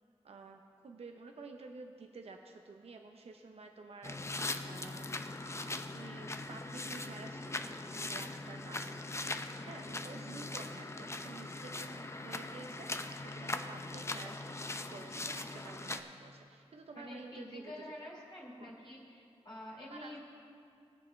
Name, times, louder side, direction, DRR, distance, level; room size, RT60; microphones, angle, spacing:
voice 1, 0.2-5.2 5.9-7.7 8.1-9.0 9.6-14.5 14.9-17.9 18.6-18.7 19.9-20.2, right 3 dB, 70° right, 4 dB, 0.6 m, -51 dB
sound 1, 4.0-16.0, left 2 dB, 25° left, 0.6 m, -41 dB
voice 2, 16.9-20.2, left 1 dB, 45° left, -4 dB, 2.7 m, -48 dB
20.5 x 7.6 x 3.1 m, 2.4 s
wide cardioid pair, 75°, 11 cm